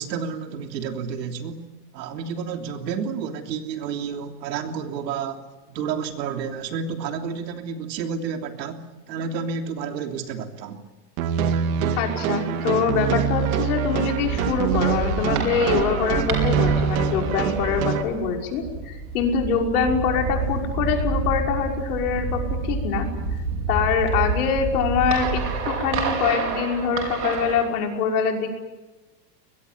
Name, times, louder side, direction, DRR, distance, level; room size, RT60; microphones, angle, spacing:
voice 1, 0.0-1.6 1.9-10.8, right 6 dB, 80° right, 4 dB, 3.3 m, -30 dB
sound 1, 11.2-18.0, right 7 dB, 55° right, 2.5 m, -25 dB
voice 2, 12.0-23.1 23.7-28.5, left 6 dB, 60° left, 2 dB, 5.7 m, -24 dB
sound 2, 14.2-27.6, right 4 dB, 35° right, 5.0 m, -28 dB
24.0 x 21.0 x 9.7 m, 1.2 s
supercardioid pair, 175°, 50 cm